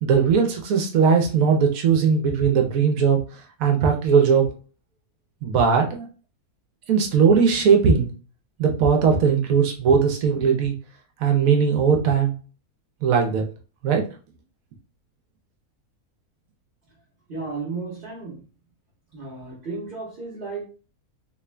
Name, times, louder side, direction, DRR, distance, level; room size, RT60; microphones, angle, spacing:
voice 1, 0.0-3.2 3.6-4.5 5.4-6.1 6.9-8.1 8.6-10.7 11.2-12.3 13.0-13.5 13.8-14.0, right 6 dB, 70° right, 3 dB, 1.0 m, -19 dB
voice 2, 17.3-18.4 19.1-20.6, right 4 dB, 40° right, -6 dB, 1.0 m, -33 dB
3.5 x 2.4 x 3.3 m, 0.37 s
omnidirectional pair, 1.6 m